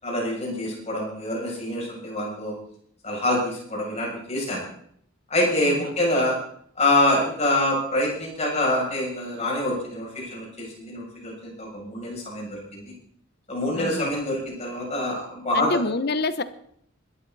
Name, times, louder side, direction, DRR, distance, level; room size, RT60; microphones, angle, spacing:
voice 1, 0.0-2.5 3.0-4.6 5.3-6.4 6.8-12.8 13.5-15.8, left 1 dB, 35° left, -2 dB, 7.3 m, -25 dB
voice 2, 5.6-5.9 13.7-14.1 15.5-16.4, left 3 dB, 55° left, 13 dB, 1.0 m, -27 dB
20.5 x 13.0 x 4.1 m, 0.66 s
head